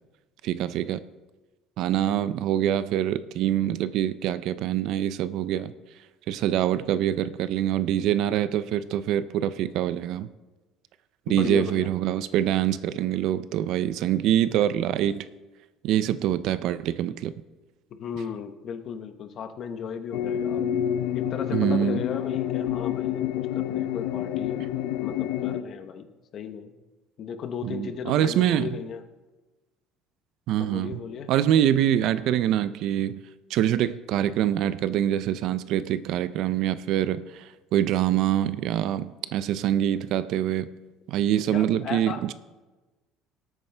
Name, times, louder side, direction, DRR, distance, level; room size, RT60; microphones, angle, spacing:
voice 1, 0.4-1.0 1.8-5.7 6.3-10.3 11.3-15.3 15.8-17.3 21.5-22.0 27.6-28.7 30.5-31.0 31.3-33.2 33.5-40.7 41.1-42.3, right 11 dB, 50° right, 15 dB, 0.4 m, -25 dB
voice 2, 11.3-11.9 17.9-20.7 21.1-24.6 25.0-26.7 27.2-29.0 30.6-31.3 41.4-42.3, left 7 dB, 35° left, 9 dB, 0.8 m, -36 dB
sound 1, 20.1-25.6, left 11 dB, 70° left, 0.6 m, -28 dB
18.5 x 8.8 x 3.3 m, 1.2 s
cardioid pair, 170°, 0 cm